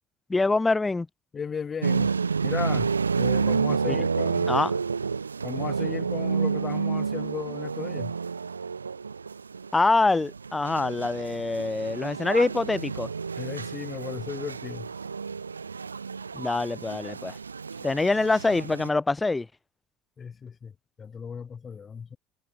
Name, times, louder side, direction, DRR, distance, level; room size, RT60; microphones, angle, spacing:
voice 1, 0.3-1.1 3.9-4.0 4.5-4.7 9.7-13.1 16.3-17.4 17.8-19.5, left 3 dB, 15° left, 0.4 m, -25 dB
voice 2, 1.3-2.1 2.4-4.6 5.4-8.2 13.4-14.9 17.7-17.8 20.2-20.7 21.0-22.2, left 6 dB, 35° left, 2.3 m, -36 dB
sound 1, 1.8-18.9, right 5 dB, 85° right, 0.6 m, -30 dB
figure-of-eight pair, 60°, 0 cm